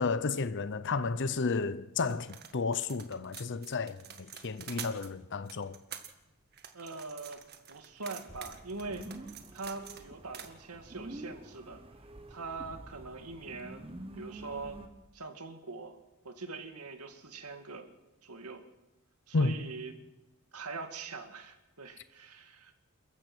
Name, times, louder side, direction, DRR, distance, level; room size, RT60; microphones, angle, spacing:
voice 1, 0.0-5.8 19.3-19.5, left 4 dB, 55° left, 0.7 m, -32 dB
sound 1, 2.1-5.1 5.5-6.1 6.5-10.0 10.3-10.5, right 9 dB, 45° right, 1.8 m, -47 dB
voice 2, 6.7-7.4 7.7-9.1 9.5-11.8 12.3-13.8 14.1-14.8 15.1-16.0 16.2-17.9 18.2-18.6 19.3-20.0 20.5-22.7, right 3 dB, 85° right, 2.2 m, -42 dB
sound 2, 8.3-14.9, right 1 dB, 25° right, 1.5 m, -48 dB
28.0 x 15.0 x 6.2 m
head